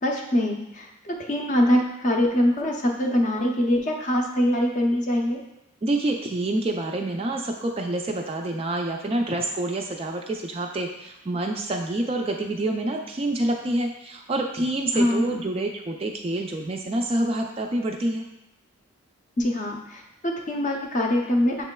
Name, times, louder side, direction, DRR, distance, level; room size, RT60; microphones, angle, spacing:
voice 1, 0.0-5.4 14.9-15.4 19.4-21.6, left 1 dB, 35° left, 1 dB, 0.5 m, -23 dB
voice 2, 5.8-18.3, right 1 dB, 25° right, 2 dB, 0.3 m, -27 dB
7.1 x 3.1 x 2.2 m, 0.92 s
head